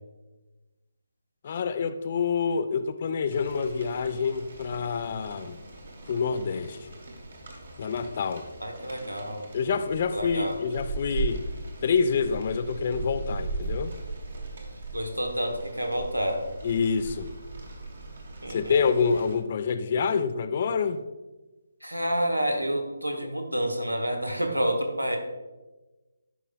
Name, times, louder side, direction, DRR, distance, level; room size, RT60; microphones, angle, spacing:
voice 1, 1.4-5.6 6.1-6.8 7.8-8.5 9.5-11.4 11.8-13.9 16.6-17.3 18.5-21.0 23.2-23.3, left 5 dB, 35° left, 0.3 m, -27 dB
Rain, 3.3-19.3, right 3 dB, 50° right, 1.3 m, -39 dB
voice 2, 8.6-9.5 10.1-10.6 14.9-16.4 18.4-18.8 21.8-25.2, equal, 85° right, 1.1 m, -29 dB
10.5 x 4.8 x 2.4 m
figure-of-eight pair, 145°, 0 cm